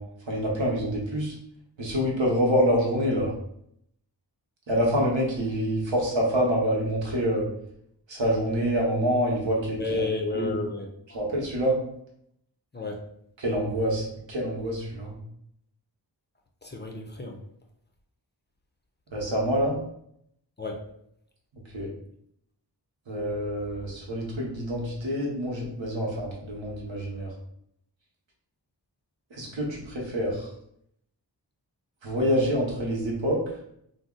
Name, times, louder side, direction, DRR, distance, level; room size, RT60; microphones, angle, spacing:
voice 1, 0.0-1.3 1.8-3.3 4.7-7.5 8.1-10.0 10.3-10.5 11.1-11.8 13.4-15.1 19.1-19.8 21.7-21.9 23.1-27.3 29.4-30.5 32.0-33.4, equal, 85° right, -2 dB, 0.9 m, -26 dB
voice 2, 9.8-11.2 12.7-13.0 16.6-17.4 20.6-20.8, left 3 dB, 25° left, 1 dB, 0.4 m, -32 dB
2.5 x 2.0 x 3.7 m, 0.71 s
wide cardioid pair, 55°, 44 cm